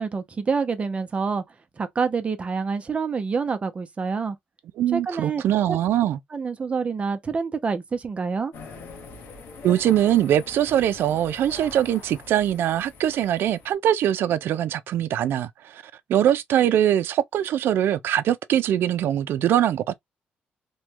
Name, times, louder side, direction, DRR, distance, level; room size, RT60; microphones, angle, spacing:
voice 1, 0.0-1.4 1.8-4.4 4.9-5.4 5.7-5.8 6.3-8.5, right 5 dB, 35° right, 0.6 m, -27 dB
voice 2, 4.8-6.2 9.6-15.8 16.1-19.9, right 11 dB, 80° right, 0.3 m, -22 dB
sound 1, 8.5-13.7, left 3 dB, 85° left, 1.0 m, -43 dB
3.1 x 2.2 x 2.9 m
cardioid pair, 105°, 4 cm